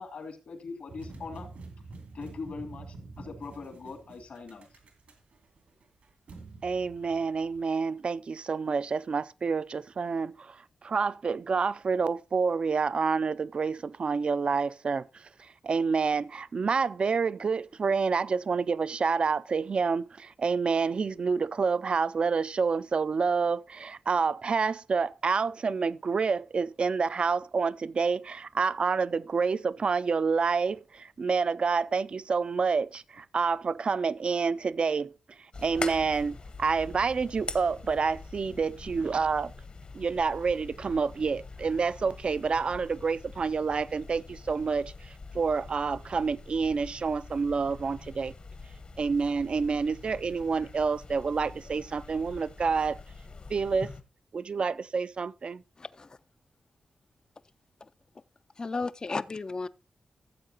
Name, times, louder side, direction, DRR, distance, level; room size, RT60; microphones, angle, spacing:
voice 1, 0.0-1.5 2.1-4.8, left 4 dB, 75° left, 2.4 m, -41 dB
sound 1, 0.9-7.7, right 3 dB, 85° right, 2.6 m, -47 dB
voice 2, 6.6-35.1 35.6-39.5 39.9-48.3 49.0-53.0 53.5-53.9 54.3-55.6, right 5 dB, 50° right, 0.4 m, -28 dB
sound 2, 35.5-54.0, left 3 dB, 50° left, 1.0 m, -44 dB
voice 3, 55.8-56.1 58.6-59.7, left 3 dB, 35° left, 0.4 m, -33 dB
14.5 x 7.5 x 2.9 m
cardioid pair, 85°, 2 cm